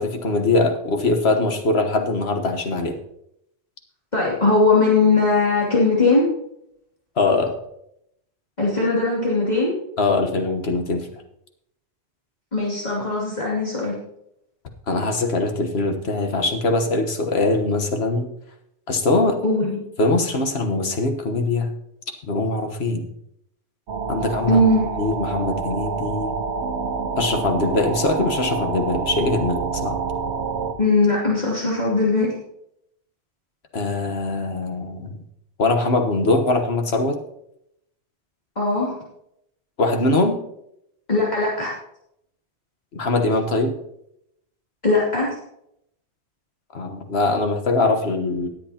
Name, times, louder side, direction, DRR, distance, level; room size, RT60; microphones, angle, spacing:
voice 1, 0.0-3.0 7.2-7.6 10.0-11.1 14.9-18.3 18.9-19.4 20.0-21.7 22.3-23.0 24.1-24.6 25.0-26.3 27.2-30.0 33.7-35.2 35.6-37.2 39.8-40.4 42.9-43.7 46.7-48.5, left 2 dB, 65° left, 5 dB, 1.5 m, -22 dB
voice 2, 4.1-6.3 8.6-9.7 12.5-13.9 19.4-19.8 24.5-24.8 30.8-32.3 38.6-39.0 41.1-41.7 44.8-45.3, left 3 dB, 40° left, -6 dB, 2.7 m, -19 dB
sound 1, 23.9-30.7, right 5 dB, 75° right, 1.3 m, -27 dB
19.0 x 7.7 x 2.9 m, 0.77 s
omnidirectional pair, 1.2 m